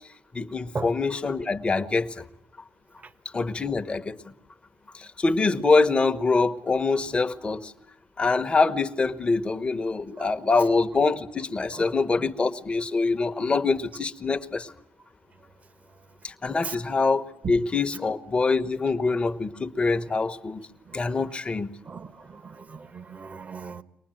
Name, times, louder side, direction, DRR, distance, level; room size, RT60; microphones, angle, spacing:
voice 1, 0.3-2.2 3.3-4.2 4.9-7.7 8.2-14.7 16.2-20.7 20.9-21.8, left 3 dB, 25° left, 1.1 m, -25 dB
voice 2, 21.9-23.8, right 4 dB, 35° right, 1.1 m, -37 dB
23.5 x 19.5 x 9.1 m
cardioid pair, 95°, 4 cm